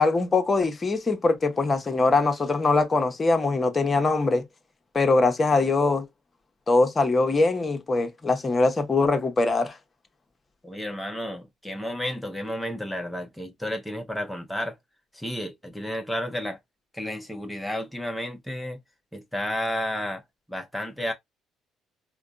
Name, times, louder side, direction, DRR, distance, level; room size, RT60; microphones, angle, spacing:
voice 1, 0.0-4.4 4.9-6.1 6.7-9.8, left 3 dB, 30° left, 1.1 m, -22 dB
voice 2, 10.6-14.8 15.1-16.6 16.9-18.8 19.1-20.2 20.5-21.1, left 1 dB, 5° left, 1.0 m, -32 dB
4.8 x 2.3 x 2.5 m
figure-of-eight pair, 50°, 0 cm